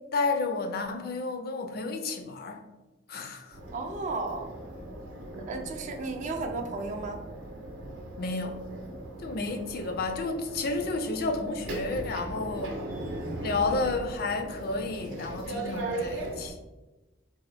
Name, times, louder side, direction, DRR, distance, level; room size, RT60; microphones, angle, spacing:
voice 1, 0.1-2.6 3.1-3.6 8.2-8.6 9.2-12.8 13.4-16.6, left 3 dB, 50° left, 6 dB, 0.4 m, -31 dB
sound 1, 3.5-16.5, right 1 dB, 85° right, 0.6 m, -38 dB
voice 2, 3.7-4.5 5.4-7.2, right 3 dB, 40° right, 4 dB, 0.3 m, -34 dB
3.7 x 2.2 x 3.2 m, 1.1 s
head